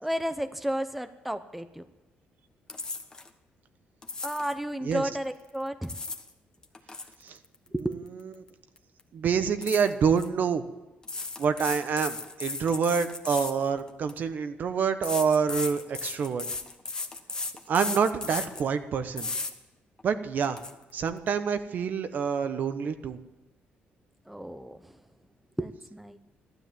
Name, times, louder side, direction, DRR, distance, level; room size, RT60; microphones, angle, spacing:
voice 1, 0.0-1.9 4.2-6.0 7.7-8.0 24.3-25.0 25.6-26.2, right 1 dB, 5° right, 9 dB, 0.7 m, -32 dB
sound 1, 2.7-3.3 4.0-4.6 5.6-6.3 6.6-8.5 8.8-9.0 9.6-10.3 11.0-14.2 15.0-18.7 19.2-19.5 20.0-20.1 20.4-20.7, left 3 dB, 20° left, 1.3 m, -35 dB
voice 2, 9.1-10.6 11.4-16.5 17.7-19.3 20.0-20.6 20.9-23.2, right 6 dB, 50° right, 9 dB, 1.1 m, -27 dB
14.5 x 12.5 x 7.5 m, 1.1 s
cardioid pair, 130°, 4 cm